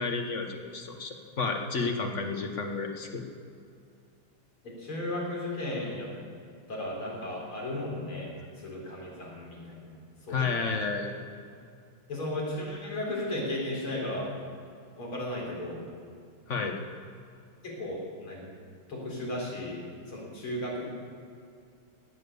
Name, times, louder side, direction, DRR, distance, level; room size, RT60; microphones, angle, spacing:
voice 1, 0.0-3.2 10.3-11.2 16.5-16.8, left 4 dB, 40° left, 4 dB, 1.4 m, -31 dB
voice 2, 4.6-6.1 6.7-8.3 8.6-10.0 10.3-10.6 12.1-14.3 15.0-15.8 17.6-18.5 18.9-19.8 20.1-20.8, left 1 dB, 80° left, -3 dB, 4.9 m, -35 dB
17.5 x 9.1 x 6.9 m, 2.4 s
omnidirectional pair, 2.3 m